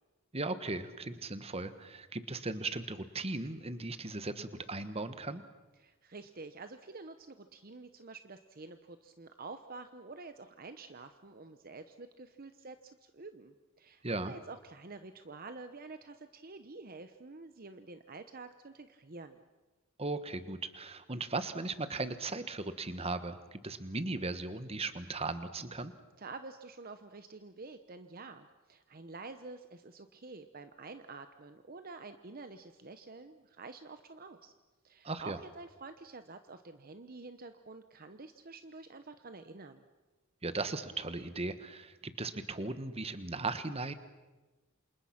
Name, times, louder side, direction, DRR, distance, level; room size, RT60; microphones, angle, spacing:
voice 1, 0.3-5.4 14.0-14.3 20.0-25.9 35.0-35.4 40.4-43.9, right 3 dB, 30° right, 11 dB, 1.3 m, -37 dB
voice 2, 5.8-19.4 26.2-34.5 34.8-39.8, right 3 dB, 45° right, 9 dB, 0.9 m, -48 dB
28.5 x 27.0 x 6.0 m, 1.2 s
head